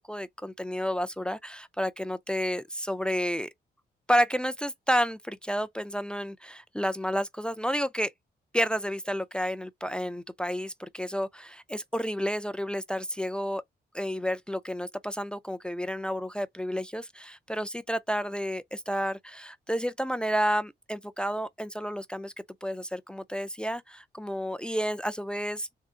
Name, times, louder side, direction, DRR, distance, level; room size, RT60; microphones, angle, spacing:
voice 1, 0.1-3.5 4.1-8.1 8.5-13.6 13.9-22.3 22.6-25.7, equal, 5° left, 0.3 m, -30 dB
3.7 x 2.4 x 4.6 m
cardioid pair, 125°, 17 cm